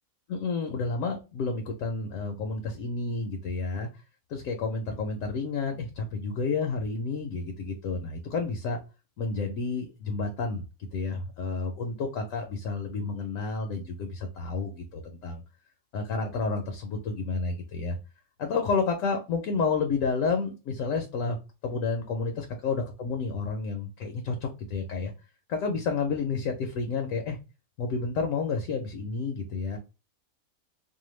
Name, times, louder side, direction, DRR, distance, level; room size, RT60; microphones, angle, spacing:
voice 1, 0.3-3.9 4.3-8.8 9.2-10.6 10.9-15.4 15.9-18.0 18.4-21.4 21.6-25.1 25.5-27.4 27.8-29.8, left 4 dB, 70° left, 3 dB, 0.9 m, -30 dB
2.6 x 2.2 x 3.1 m, 0.29 s
omnidirectional pair, 1.5 m